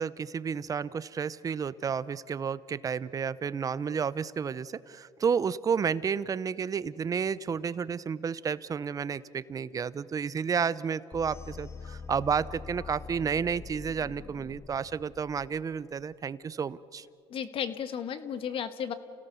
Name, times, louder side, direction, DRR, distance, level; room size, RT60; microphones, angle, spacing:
voice 1, 0.0-17.1, right 6 dB, 30° right, 18 dB, 0.6 m, -31 dB
sound 1, 11.1-16.0, left 5 dB, 25° left, 0.6 m, -44 dB
voice 2, 17.3-18.9, left 8 dB, 55° left, 11 dB, 1.5 m, -34 dB
29.5 x 17.5 x 6.9 m, 2.6 s
cardioid pair, 100°, 11 cm